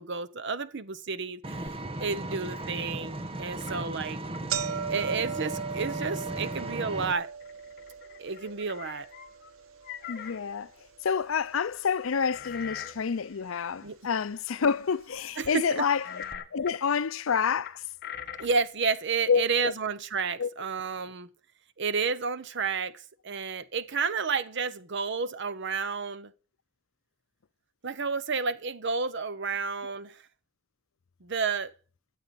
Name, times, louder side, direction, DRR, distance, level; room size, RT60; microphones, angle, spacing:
voice 1, 0.0-4.2 4.9-7.3 8.2-9.1 13.8-14.0 15.4-15.8 18.4-21.3 21.8-26.3 27.8-30.2 31.2-31.7, right 5 dB, 60° right, 0.9 m, -31 dB
Vehicle, 1.4-7.1, right 1 dB, 30° right, 1.1 m, -36 dB
sound 1, 1.7-1.8 2.3-2.4 3.2-3.4 3.8-3.9 4.1-12.3 12.6-13.3 14.1-14.2 15.2-15.3 15.6-15.7 16.2-16.4, right 6 dB, 85° right, 0.9 m, -39 dB
sound 2, 2.4-2.8 3.6-3.8 4.3-4.5 6.0-6.6 7.0-7.1 7.2-9.5 9.8-10.4 12.0-13.7 16.0-16.8 17.7-18.6, left 8 dB, 50° left, 1.4 m, -43 dB
voice 2, 10.1-10.7 11.0-16.2 16.5-17.8 19.3-19.7 20.4-20.5, left 6 dB, 90° left, 0.6 m, -28 dB
13.5 x 7.7 x 7.1 m
head